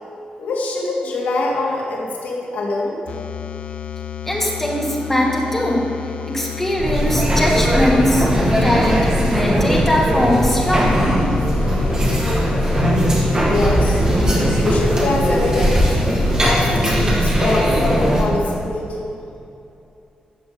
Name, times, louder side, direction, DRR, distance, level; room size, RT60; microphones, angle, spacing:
voice 1, 0.4-3.0 13.4-14.0 14.3-16.0 16.4-19.1, left 2 dB, 80° left, -3 dB, 2.8 m, -24 dB
sound 1, 3.1-17.2, left 9 dB, 55° left, 0.8 m, -32 dB
voice 2, 4.2-5.8 6.3-8.3 8.6-10.9, equal, 10° left, -3 dB, 2.3 m, -20 dB
sound 2, 6.8-18.2, equal, 25° right, 2.6 m, -18 dB
13.5 x 7.1 x 8.8 m, 2.7 s
wide cardioid pair, 150°, 3 cm